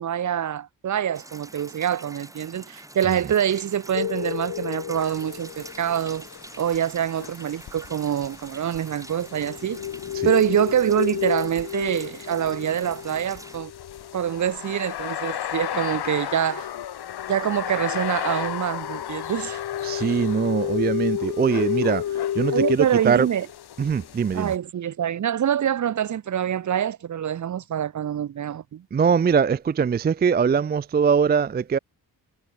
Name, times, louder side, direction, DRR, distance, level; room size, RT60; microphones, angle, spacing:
voice 1, 0.0-6.3 6.6-9.8 10.2-13.7 14.1-16.7 17.3-19.6 22.5-23.5 24.3-28.8, right 9 dB, 50° right, 0.7 m, -25 dB
sound 1, 1.1-13.6, right 1 dB, 10° right, 3.6 m, -45 dB
sound 2, 3.9-6.3 9.2-14.8 15.6-15.7 16.0-16.2 16.8-16.9 17.1-17.3 17.6-22.8, left 10 dB, 65° left, 1.0 m, -31 dB
sound 3, 5.0-24.6, left 11 dB, 80° left, 1.6 m, -37 dB
voice 2, 19.8-23.3 23.8-24.5 28.9-31.8, right 6 dB, 25° right, 0.4 m, -22 dB
wide cardioid pair, 140°, 38 cm